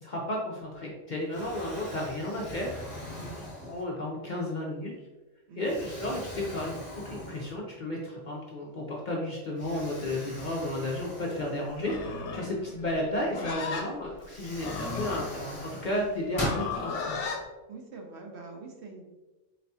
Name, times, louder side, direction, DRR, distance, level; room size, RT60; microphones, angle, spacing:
voice 1, 0.0-2.8 3.7-4.9 5.6-6.7 7.0-17.2, left 1 dB, 50° left, -3 dB, 0.6 m, -33 dB
Explosion, 0.6-1.0 1.3-4.1 4.7-4.9 5.6-7.9 8.2-8.3 9.6-12.2 13.6-13.7 14.2-16.7, left 1 dB, 30° left, 1.1 m, -40 dB
Livestock farm animals working animals, 11.7-17.4, left 4 dB, 70° left, 0.9 m, -36 dB
voice 2, 17.7-19.1, right 3 dB, 65° right, 1 dB, 0.9 m, -45 dB
4.1 x 3.4 x 2.7 m, 1.1 s
omnidirectional pair, 1.3 m